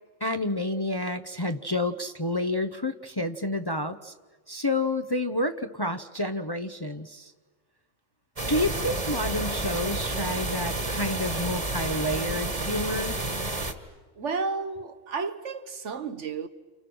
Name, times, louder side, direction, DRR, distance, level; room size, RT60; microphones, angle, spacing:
voice 1, 0.2-4.1 4.5-7.3 8.5-13.2, left 1 dB, 25° left, 0.7 m, -29 dB
sound 1, 8.4-13.7, right 2 dB, 30° right, 1.9 m, -30 dB
voice 2, 14.2-16.5, right 4 dB, 70° right, 1.6 m, -32 dB
29.5 x 29.5 x 6.2 m
omnidirectional pair, 1.3 m